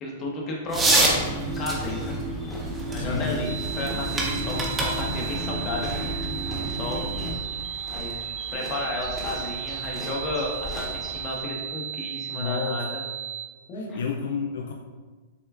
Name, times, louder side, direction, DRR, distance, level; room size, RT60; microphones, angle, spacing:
voice 1, 0.0-1.3 1.6-2.2 2.9-3.5 3.7-7.0 7.8-13.0 13.7-14.0, left 2 dB, 35° left, -1 dB, 0.9 m, -33 dB
sound 1, 0.7-7.3, right 2 dB, 20° right, 0.9 m, -28 dB
sound 2, 0.9-11.4, left 1 dB, 5° left, 1.1 m, -40 dB
voice 2, 3.0-3.4 12.3-12.8 13.7-14.7, left 6 dB, 75° left, 2 dB, 0.3 m, -30 dB
sound 3, 3.4-13.4, right 10 dB, 60° right, 0.9 m, -35 dB
6.6 x 2.2 x 2.4 m, 1.4 s
hypercardioid pair, 120°, 0 cm